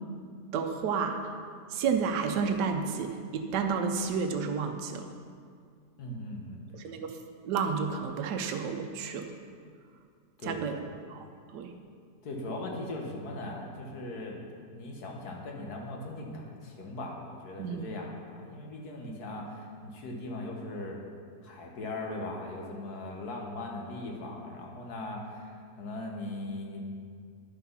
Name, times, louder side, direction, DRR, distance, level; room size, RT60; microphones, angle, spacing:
voice 1, 0.5-1.2 1.7-5.1 6.7-7.2 7.4-9.3 10.4-10.8 11.1-11.7 17.6-17.9, right 5 dB, 85° right, 5 dB, 1.3 m, -31 dB
voice 2, 6.0-6.6 10.4-10.7 12.2-14.4 14.7-21.0 21.4-26.8, left 2 dB, 70° left, 0 dB, 1.8 m, -39 dB
10.0 x 6.0 x 5.6 m, 2.1 s
omnidirectional pair, 1.8 m